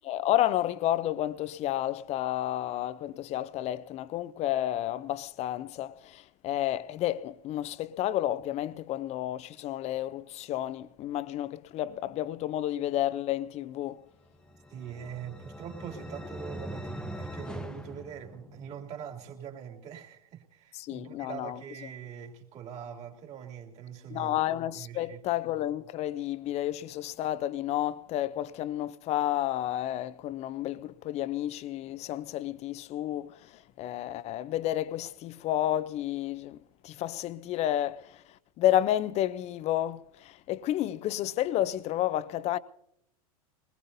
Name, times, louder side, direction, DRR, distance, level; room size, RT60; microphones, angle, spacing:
voice 1, 0.0-14.0 20.7-21.6 24.1-36.6 36.8-42.6, left 13 dB, 35° left, 0.6 m, -31 dB
sound 1, 14.3-18.9, equal, 5° left, 0.8 m, -42 dB
voice 2, 14.7-24.4 24.8-25.2, right 8 dB, 35° right, 2.7 m, -43 dB
21.5 x 20.0 x 2.7 m
hypercardioid pair, 110°, 19 cm